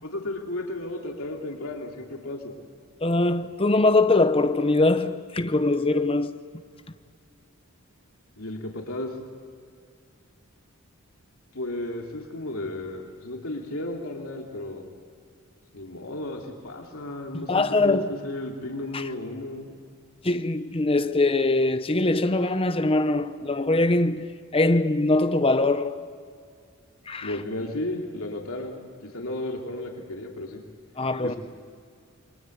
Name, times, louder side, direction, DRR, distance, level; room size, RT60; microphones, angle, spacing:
voice 1, 0.0-2.5 8.4-9.1 11.5-14.9 15.7-19.7 27.2-30.6 31.2-31.4, left 1 dB, 70° left, 3.0 m, -34 dB
voice 2, 3.0-6.4 17.5-18.1 18.9-19.0 20.2-24.3 24.5-26.1 27.1-27.3 31.0-31.3, left 2 dB, 25° left, 0.8 m, -22 dB
29.0 x 22.5 x 8.0 m
head